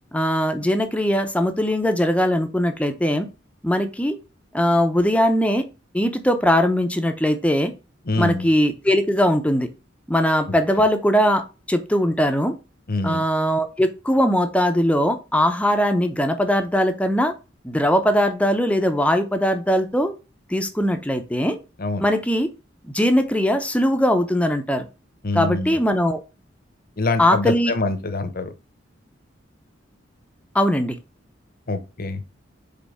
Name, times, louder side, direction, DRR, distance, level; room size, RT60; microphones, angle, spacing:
voice 1, 0.1-3.3 3.6-4.2 4.5-5.6 5.9-7.7 8.2-9.7 10.1-12.5 13.0-17.3 17.6-20.1 20.5-21.6 22.0-22.5 22.8-24.9 25.3-26.2 27.2-27.7 30.5-31.0, equal, 5° left, 0.6 m, -20 dB
voice 2, 8.1-8.5 12.9-13.2 21.8-22.0 25.2-25.8 27.0-28.5 31.7-32.2, left 3 dB, 50° left, 0.9 m, -25 dB
5.3 x 3.7 x 4.9 m
head